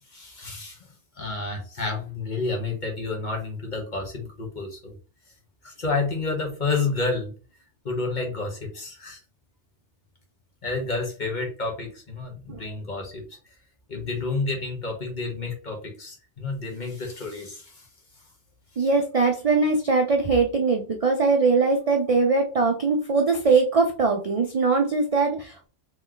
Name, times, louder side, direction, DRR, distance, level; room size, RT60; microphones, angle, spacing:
voice 1, 0.1-0.8 1.2-4.9 5.6-7.3 7.8-9.2 10.6-13.2 13.9-17.9, left 3 dB, 40° left, 1 dB, 1.2 m, -30 dB
voice 2, 18.8-25.7, right 4 dB, 45° right, 3 dB, 0.4 m, -21 dB
3.1 x 3.1 x 3.8 m, 0.36 s
omnidirectional pair, 1.2 m